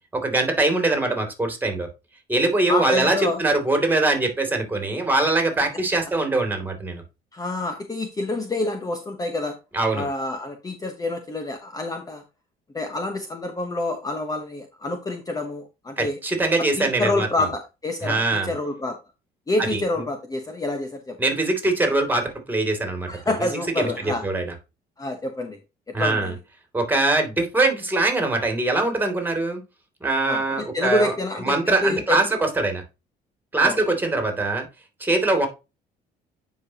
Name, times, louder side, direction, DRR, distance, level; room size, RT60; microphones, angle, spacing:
voice 1, 0.1-1.9 2.3-7.0 9.7-10.1 16.0-17.3 18.0-18.5 19.6-20.0 21.2-23.5 23.8-24.6 25.9-26.3 26.7-29.6 30.0-32.8 33.5-34.7 35.0-35.5, right 2 dB, 10° right, 5 dB, 2.6 m, -22 dB
voice 2, 2.7-3.4 7.3-9.6 9.9-12.2 12.7-16.2 16.8-19.0 19.5-21.2 23.1-24.2 25.0-25.6 25.9-26.3 30.3-32.2 33.6-33.8, left 2 dB, 20° left, 6 dB, 1.0 m, -27 dB
9.4 x 5.0 x 2.9 m, 0.26 s
cardioid pair, 110°, 17 cm